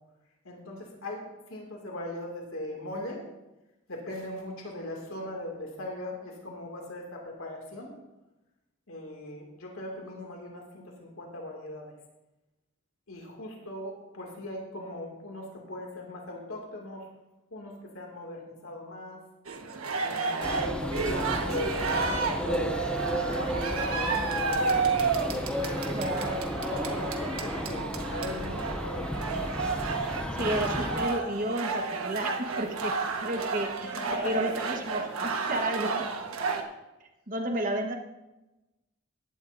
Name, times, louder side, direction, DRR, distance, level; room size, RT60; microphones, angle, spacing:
voice 1, 0.4-3.2 3.9-7.9 8.9-11.9 13.1-17.1 17.5-19.2 20.0-22.8 23.3-25.0 25.6-29.5 33.9-34.3, left 1 dB, 80° left, 0 dB, 2.5 m, -39 dB
sound 1, 19.4-36.6, right 4 dB, 85° right, 1.4 m, -31 dB
sound 2, 20.4-31.1, equal, 5° left, 0.6 m, -33 dB
voice 2, 30.3-32.9 33.2-35.9 37.3-38.0, right 1 dB, 40° right, 3 dB, 1.3 m, -32 dB
15.5 x 11.5 x 2.7 m, 1.0 s
head